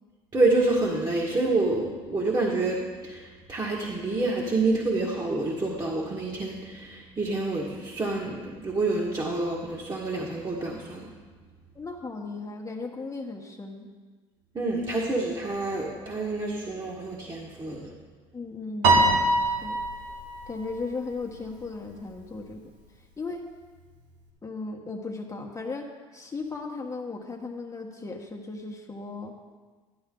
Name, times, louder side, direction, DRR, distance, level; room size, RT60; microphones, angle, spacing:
voice 1, 0.3-11.1 14.5-17.9, right 2 dB, 30° right, -4 dB, 1.9 m, -28 dB
voice 2, 11.7-13.9 18.3-19.8 20.5-22.6 23.2-23.4 24.4-25.9 26.1-29.3, left 3 dB, 20° left, 0 dB, 1.4 m, -36 dB
Piano, 18.8-21.3, right 2 dB, 85° right, 1.7 m, -24 dB
11.5 x 11.5 x 3.9 m, 1.4 s
supercardioid pair, 75°, 15 cm